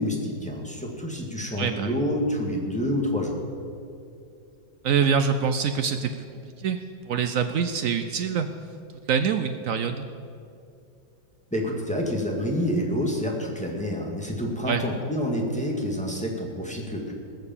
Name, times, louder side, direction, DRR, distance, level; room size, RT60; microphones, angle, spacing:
voice 1, 0.0-3.4 11.5-17.1, equal, 5° left, -1 dB, 1.7 m, -28 dB
voice 2, 1.6-1.9 4.8-6.1 6.6-6.8 7.1-8.5 9.1-10.1 14.7-14.8, right 6 dB, 85° right, 8 dB, 0.7 m, -24 dB
19.5 x 6.8 x 7.2 m, 2.5 s
omnidirectional pair, 2.1 m